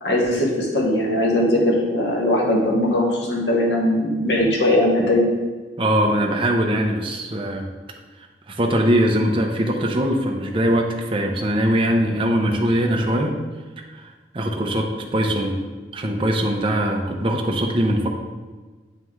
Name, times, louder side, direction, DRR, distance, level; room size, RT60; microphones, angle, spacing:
voice 1, 0.0-5.2, left 1 dB, 75° left, -1 dB, 1.1 m, -20 dB
voice 2, 5.8-7.7 8.5-13.3 13.9-14.1 14.3-15.6 15.9-18.1, equal, 30° right, 1 dB, 0.6 m, -21 dB
8.9 x 3.1 x 3.6 m, 1.3 s
head